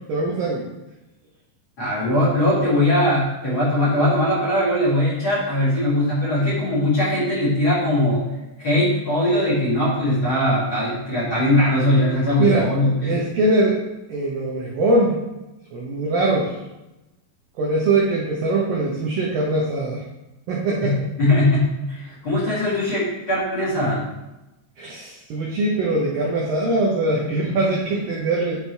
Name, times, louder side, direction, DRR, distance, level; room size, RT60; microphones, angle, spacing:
voice 1, 0.1-0.7 12.4-12.7 13.0-13.8 14.1-15.2 15.7-16.6 17.6-20.0 20.5-20.9 24.8-28.6, right 2 dB, 75° right, -3 dB, 2.0 m, -22 dB
voice 2, 1.8-8.2 8.6-13.2 20.8-20.9 21.2-24.1, left 1 dB, 35° left, -8 dB, 2.3 m, -20 dB
10.5 x 4.5 x 3.4 m, 0.98 s
omnidirectional pair, 5.4 m